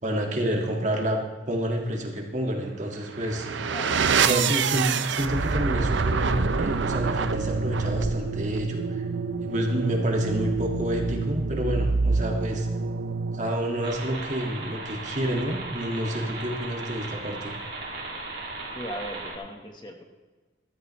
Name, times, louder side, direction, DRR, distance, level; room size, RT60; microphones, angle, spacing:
voice 1, 0.0-3.6 4.2-9.1 9.4-12.7 13.3-17.5, equal, 40° right, 1 dB, 1.9 m, -29 dB
sound 1, 3.0-13.7, right 5 dB, 85° right, 0.6 m, -27 dB
voice 2, 3.7-4.0 10.0-10.1 18.7-20.0, equal, 25° left, 3 dB, 1.3 m, -38 dB
sound 2, 13.8-19.4, right 2 dB, 65° right, 2.5 m, -37 dB
14.5 x 13.5 x 3.2 m, 1.3 s
head